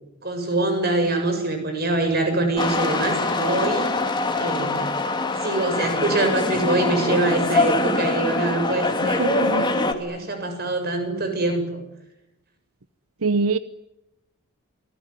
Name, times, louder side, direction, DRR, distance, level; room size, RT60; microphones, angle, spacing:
voice 1, 0.2-3.9 4.4-4.8 5.4-11.8, right 2 dB, 45° right, 7 dB, 7.5 m, -24 dB
sound 1, 2.6-9.9, left 2 dB, 20° left, 2.5 m, -23 dB
voice 2, 9.2-9.6 13.2-13.6, right 3 dB, 80° right, 13 dB, 0.9 m, -22 dB
28.5 x 20.0 x 9.9 m, 0.91 s
head